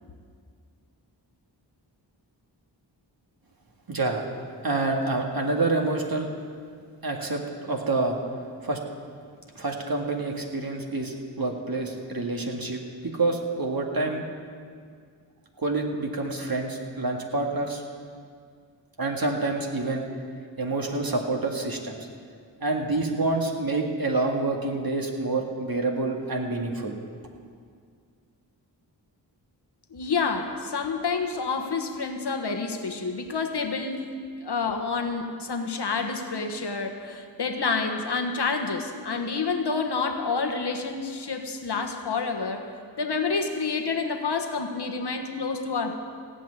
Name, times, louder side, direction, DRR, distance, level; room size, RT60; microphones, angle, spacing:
voice 1, 3.9-4.2 4.6-6.3 7.0-8.2 8.6-8.8 9.6-14.2 15.6-17.8 19.0-20.0 20.6-22.0 22.6-27.0, right 2 dB, 50° right, 1 dB, 1.9 m, -27 dB
voice 2, 29.9-34.1 34.4-42.7 43.0-45.9, left 4 dB, 60° left, 5 dB, 1.3 m, -28 dB
16.5 x 5.8 x 9.6 m, 2.1 s
cardioid pair, 40°, 45 cm